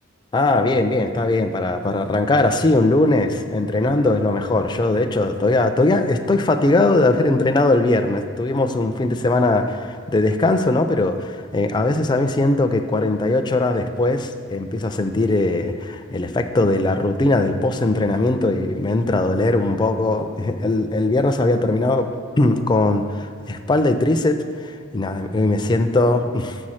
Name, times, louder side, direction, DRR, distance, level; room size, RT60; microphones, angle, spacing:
voice 1, 0.3-22.1 22.4-26.6, left 2 dB, 20° left, 7 dB, 0.3 m, -20 dB
6.6 x 4.3 x 6.3 m, 2.2 s
head